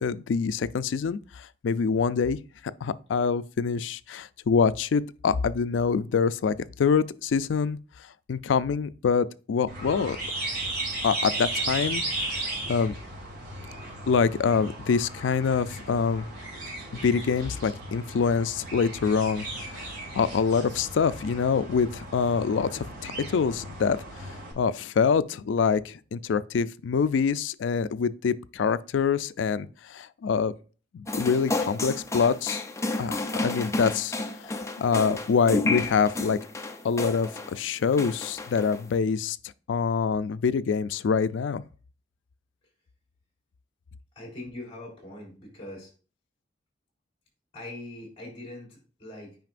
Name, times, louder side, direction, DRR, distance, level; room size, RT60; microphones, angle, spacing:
voice 1, 0.0-2.4 2.8-7.8 8.3-10.2 11.0-12.9 14.1-16.2 17.0-19.5 19.7-19.9 20.2-30.5 30.9-32.6 33.0-36.4 36.8-39.4 39.7-41.6, left 6 dB, 80° left, 0.4 m, -25 dB
sound 1, 9.7-24.5, right 2 dB, 60° right, 3.1 m, -36 dB
sound 2, 31.1-37.6 37.9-38.9, left 2 dB, 15° left, 0.6 m, -31 dB
voice 2, 44.2-45.9 47.5-49.4, left 1 dB, 35° left, 3.7 m, -42 dB
9.2 x 5.2 x 2.5 m
head